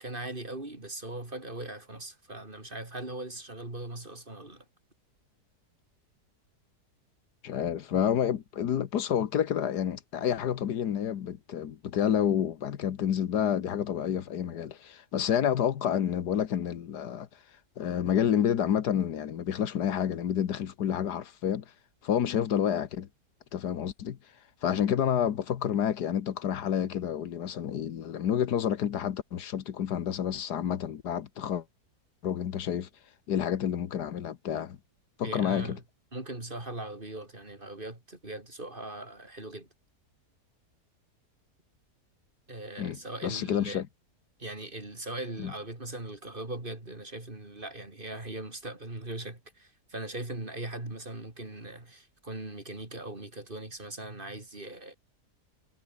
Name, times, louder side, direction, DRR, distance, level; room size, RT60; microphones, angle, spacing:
voice 1, 0.0-4.7 35.2-35.8 36.1-39.7 42.5-43.8 44.4-54.9, right 2 dB, 30° right, 4.0 m, -40 dB
voice 2, 7.4-17.3 17.8-21.7 22.0-23.1 23.5-24.2 24.6-31.6 32.2-32.9 33.3-34.8 35.2-35.8 42.8-43.9 45.4-45.5, left 9 dB, 80° left, 1.7 m, -29 dB
omnidirectional pair, 1.7 m